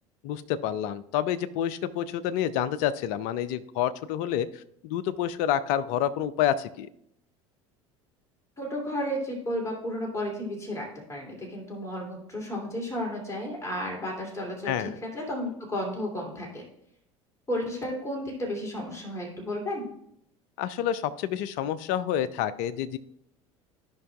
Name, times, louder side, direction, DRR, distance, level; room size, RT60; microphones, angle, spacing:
voice 1, 0.2-6.9 14.7-15.0 20.6-23.0, left 10 dB, 55° left, 13 dB, 0.5 m, -28 dB
voice 2, 8.6-16.6 17.5-19.9, left 1 dB, 20° left, -1 dB, 2.9 m, -33 dB
13.5 x 5.5 x 2.3 m, 0.74 s
figure-of-eight pair, 65°, 16 cm